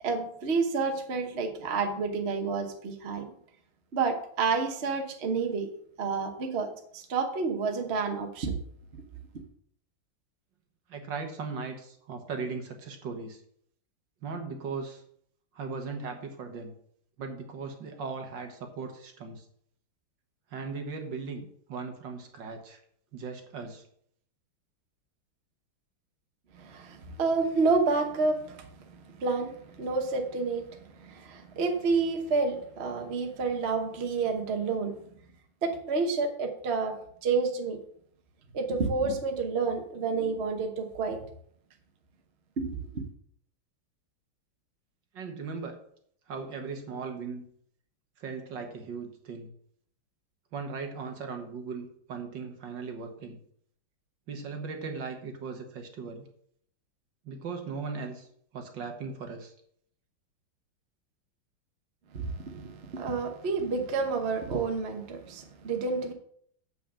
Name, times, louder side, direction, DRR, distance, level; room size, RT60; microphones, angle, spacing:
voice 1, 0.0-3.3 3.9-5.7 6.0-8.5 26.6-28.7 29.2-30.7 31.0-34.9 35.6-36.9 37.2-37.8 38.5-41.2 42.6-43.0 62.1-66.1, right 4 dB, 40° right, 4 dB, 1.1 m, -29 dB
voice 2, 10.9-13.4 14.2-15.0 15.6-16.7 17.2-19.4 20.5-22.8 23.1-23.8 45.1-45.8 46.3-47.4 48.2-49.5 50.5-53.4 54.3-56.2 57.3-58.3 58.5-59.5, right 4 dB, 65° right, 4 dB, 1.9 m, -38 dB
7.0 x 6.1 x 7.4 m, 0.65 s
omnidirectional pair, 2.2 m